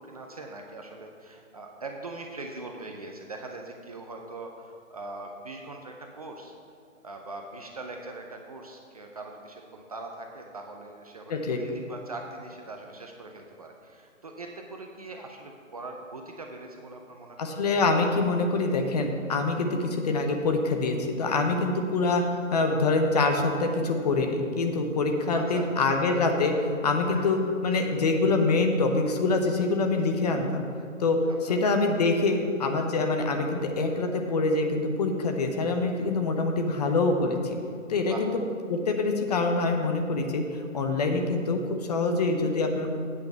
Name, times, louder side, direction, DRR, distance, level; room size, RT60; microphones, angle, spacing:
voice 1, 0.0-6.5 7.0-17.6 25.3-25.7 27.1-27.3 31.3-31.6 38.1-38.3, right 2 dB, 30° right, 2 dB, 0.5 m, -41 dB
voice 2, 11.3-11.6 17.4-22.3 22.5-30.6 31.0-37.6 37.9-38.3 38.7-40.4 40.7-41.6 41.9-42.9, left 3 dB, 30° left, 4 dB, 0.8 m, -25 dB
8.4 x 5.1 x 7.3 m, 2.4 s
hypercardioid pair, 150°, 40 cm